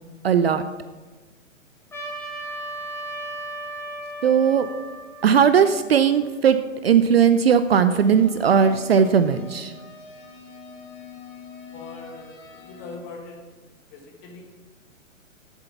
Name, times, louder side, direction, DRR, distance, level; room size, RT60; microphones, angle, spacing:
voice 1, 0.2-0.6 4.2-4.7 5.2-6.6 6.8-9.7, right 7 dB, 50° right, 11 dB, 0.5 m, -18 dB
Trumpet, 1.9-6.4, right 2 dB, 5° left, 1.4 m, -36 dB
sound 1, 7.9-13.0, left 4 dB, 50° left, 2.4 m, -44 dB
voice 2, 11.7-13.4 13.9-14.4, left 3 dB, 25° left, 2 dB, 1.5 m, -41 dB
7.6 x 7.1 x 5.7 m, 1.3 s
figure-of-eight pair, 120°, 40 cm